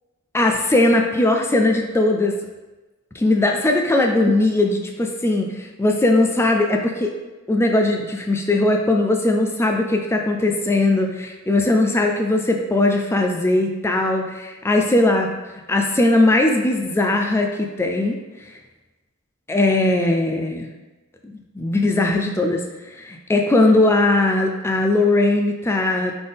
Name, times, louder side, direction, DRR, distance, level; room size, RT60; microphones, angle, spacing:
voice 1, 0.3-2.4 3.1-7.1 7.5-15.3 15.7-18.6 19.5-20.7 21.2-26.1, left 2 dB, 10° left, 2 dB, 0.3 m, -19 dB
3.9 x 3.8 x 3.4 m, 1.2 s
head